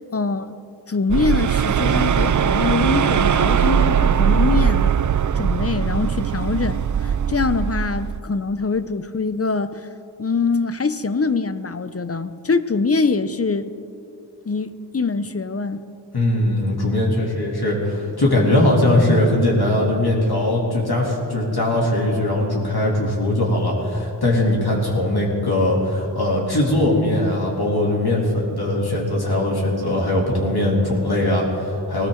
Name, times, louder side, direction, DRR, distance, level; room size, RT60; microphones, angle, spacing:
voice 1, 0.1-0.5 0.9-4.9 5.3-9.9 10.2-13.7 14.5-15.8, left 4 dB, 35° left, 13 dB, 0.7 m, -23 dB
sound 1, 1.1-8.2, right 8 dB, 45° right, 0.4 m, -20 dB
voice 2, 16.1-32.1, left 1 dB, 60° left, -3 dB, 3.1 m, -20 dB
19.5 x 17.0 x 3.9 m, 2.6 s
wide cardioid pair, 60°, 43 cm